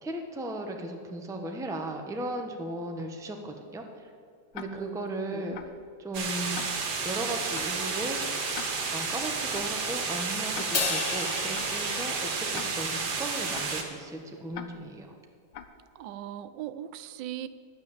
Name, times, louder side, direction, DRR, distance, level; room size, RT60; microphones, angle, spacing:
voice 1, 0.0-4.1 4.5-5.7 6.0-6.6 7.0-8.2 8.9-15.1, right 1 dB, 5° right, 3 dB, 0.7 m, -36 dB
Tick-tock, 4.5-4.7 5.5-5.7 6.5-6.7 7.5-7.7 8.5-8.7 9.5-9.7 10.5-10.7 11.5-11.7 12.5-12.7 13.5-13.7 14.5-14.7 15.5-15.7, left 9 dB, 85° left, 1.5 m, -40 dB
voice 2, 4.7-5.5 16.0-17.5, right 12 dB, 85° right, 13 dB, 1.3 m, -39 dB
sound 1, 6.1-13.8, right 4 dB, 65° right, 1.9 m, -31 dB
Crash cymbal, 10.7-13.1, left 4 dB, 70° left, 0.3 m, -33 dB
10.5 x 9.0 x 7.2 m, 2.2 s
omnidirectional pair, 1.9 m